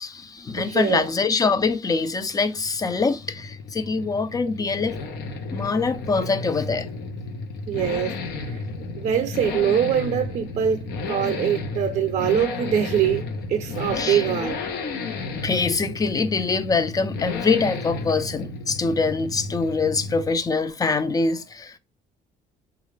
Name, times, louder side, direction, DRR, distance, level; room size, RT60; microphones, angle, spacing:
voice 1, 0.0-5.0 5.5-6.9 11.4-11.5 13.9-14.3 15.3-21.8, left 4 dB, 20° left, 0.4 m, -24 dB
voice 2, 0.6-1.1 7.7-8.6 9.0-14.6, right 9 dB, 50° right, 0.5 m, -24 dB
Accelerating revving vroom, 2.2-20.4 20.7-20.8, left 3 dB, 75° left, 0.8 m, -33 dB
3.7 x 2.4 x 3.1 m
cardioid pair, 110°, 17 cm